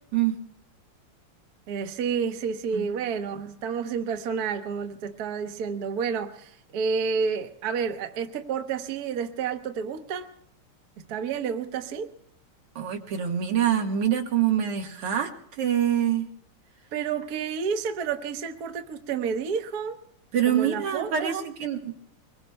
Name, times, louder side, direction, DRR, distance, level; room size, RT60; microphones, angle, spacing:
voice 1, 1.7-10.3 11.1-12.1 16.9-20.0 20.5-21.4, right 6 dB, 55° right, 1.2 m, -30 dB
voice 2, 12.8-15.3 15.6-16.3 20.3-22.0, right 9 dB, 85° right, 2.4 m, -25 dB
24.0 x 21.0 x 2.2 m
omnidirectional pair, 2.4 m